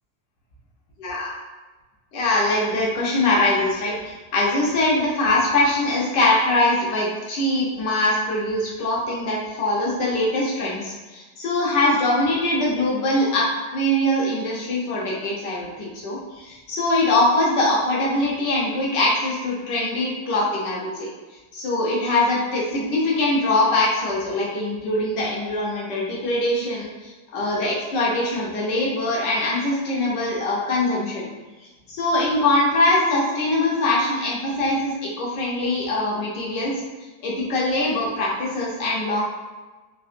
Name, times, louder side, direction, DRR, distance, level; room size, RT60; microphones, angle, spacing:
voice 1, 2.1-13.5 13.7-21.1 21.5-31.3 31.9-36.7 37.2-39.2, left 2 dB, 85° left, -4 dB, 1.5 m, -22 dB
3.9 x 2.8 x 2.5 m, 1.2 s
omnidirectional pair, 1.8 m